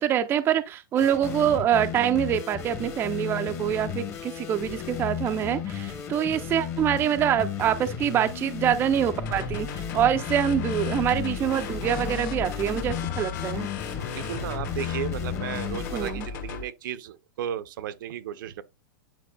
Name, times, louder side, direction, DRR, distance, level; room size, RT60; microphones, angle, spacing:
voice 1, 0.0-13.7 15.9-16.3, right 10 dB, 20° right, 0.4 m, -25 dB
sound 1, 1.0-16.1, left 8 dB, 20° left, 0.9 m, -34 dB
sound 2, 9.2-16.6, left 6 dB, 60° left, 1.5 m, -36 dB
voice 2, 14.1-18.6, right 10 dB, 65° right, 0.6 m, -34 dB
9.2 x 4.6 x 2.2 m
hypercardioid pair, 145°, 11 cm